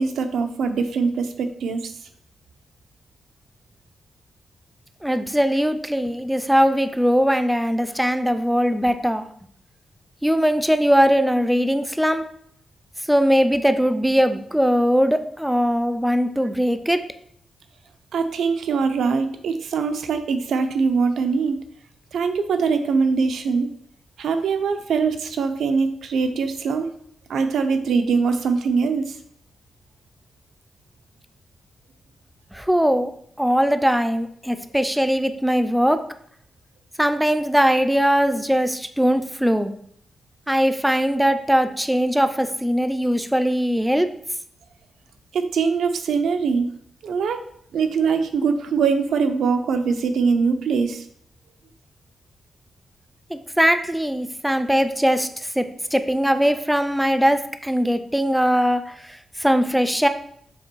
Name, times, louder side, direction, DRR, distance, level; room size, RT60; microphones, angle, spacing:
voice 1, 0.0-1.9 18.1-21.6 22.1-23.7 24.2-26.9 27.3-29.2 45.3-46.7 47.0-47.4 47.7-51.0, right 5 dB, 90° right, 7 dB, 0.6 m, -22 dB
voice 2, 5.0-9.3 10.2-12.2 13.1-17.0 32.5-33.1 33.4-36.0 37.0-39.7 40.5-44.1 53.3-55.3 55.6-60.1, equal, 5° right, 9 dB, 0.4 m, -20 dB
7.1 x 3.0 x 4.5 m, 0.67 s
wide cardioid pair, 125°, 0 cm